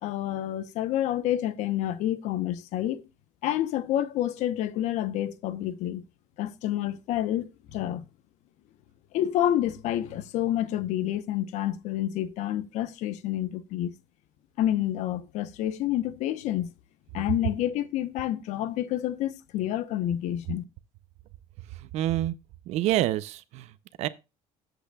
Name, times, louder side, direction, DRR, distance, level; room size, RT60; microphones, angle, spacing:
voice 1, 0.0-3.1 3.4-6.0 6.4-8.0 9.1-13.9 14.6-16.7 17.1-20.6, left 12 dB, 65° left, 0.9 m, -28 dB
voice 2, 21.9-22.3 22.7-23.6 24.0-24.1, right 14 dB, 55° right, 0.6 m, -26 dB
13.0 x 7.9 x 2.3 m
cardioid pair, 170°, 13 cm